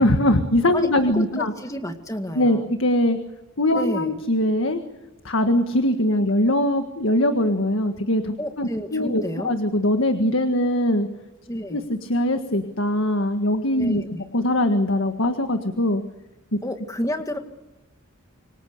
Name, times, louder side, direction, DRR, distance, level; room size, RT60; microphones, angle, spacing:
voice 1, 0.0-1.5 2.3-3.2 3.6-4.8 5.2-11.1 11.7-14.0 14.3-16.0 16.5-16.6, left 1 dB, 70° left, 7 dB, 1.7 m, -21 dB
voice 2, 0.7-2.7 3.8-4.2 8.4-9.5 11.5-11.9 13.8-14.3 16.6-17.4, equal, 15° left, 6 dB, 2.0 m, -30 dB
27.5 x 24.5 x 6.8 m, 1.0 s
head